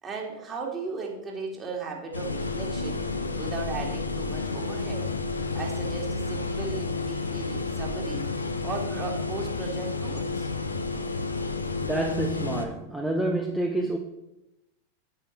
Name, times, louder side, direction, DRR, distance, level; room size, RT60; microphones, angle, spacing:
voice 1, 0.0-5.1 5.5-10.5, right 4 dB, 25° right, -1 dB, 2.7 m, -36 dB
sound 1, 2.1-12.7, left 3 dB, 80° left, 0.9 m, -31 dB
voice 2, 11.8-14.0, right 1 dB, 5° right, 1 dB, 0.9 m, -28 dB
8.8 x 8.5 x 4.6 m, 0.92 s
figure-of-eight pair, 90°, 0 cm